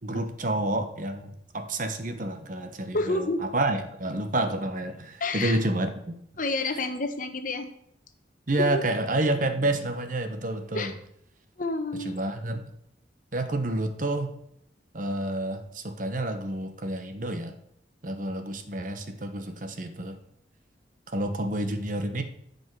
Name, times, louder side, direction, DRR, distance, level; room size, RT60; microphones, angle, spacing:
voice 1, 0.0-6.1 8.5-10.9 12.0-12.6 13.3-14.3 14.9-17.5 18.0-20.2 21.1-22.2, right 1 dB, 45° right, 7 dB, 1.0 m, -29 dB
voice 2, 2.9-3.4 5.2-5.6 6.4-7.7 8.7-8.8 10.7-10.9 11.6-12.1, left 2 dB, 45° left, 7 dB, 1.0 m, -29 dB
15.5 x 5.4 x 4.7 m, 0.73 s
head